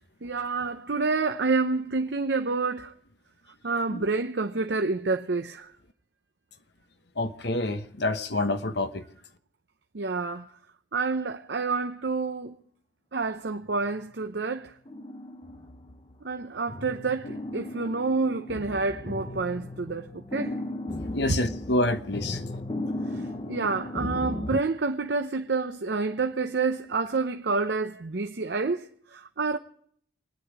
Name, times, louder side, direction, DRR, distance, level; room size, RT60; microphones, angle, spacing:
voice 1, 0.2-2.9 3.6-5.7 9.9-10.5 10.9-12.5 13.1-14.7 16.2-20.6 21.3-21.4 23.1-23.2 23.5-29.6, right 4 dB, 65° right, 0.7 m, -28 dB
voice 2, 7.2-9.0 21.1-22.6, left 2 dB, 60° left, 1.1 m, -28 dB
sound 1, 13.7-14.2 14.9-16.3 16.7-24.6, left 1 dB, 30° left, 0.7 m, -36 dB
27.0 x 10.0 x 4.7 m
head